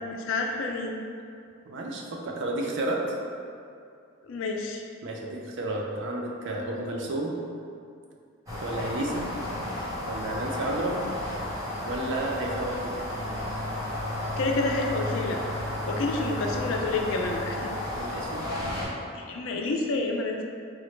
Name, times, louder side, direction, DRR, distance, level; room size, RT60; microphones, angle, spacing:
voice 1, 0.0-1.0 4.3-4.8 14.4-15.4 15.9-17.7 18.8-20.4, left 3 dB, 70° left, 2 dB, 0.4 m, -29 dB
voice 2, 1.7-3.0 5.0-7.3 8.6-9.3 10.0-11.0 11.8-12.9 15.9-16.0 17.9-18.9, right 1 dB, 65° right, -1 dB, 0.4 m, -32 dB
sound 1, 8.5-18.8, left 1 dB, 15° right, 0.8 m, -33 dB
3.8 x 2.1 x 3.1 m, 2.4 s
head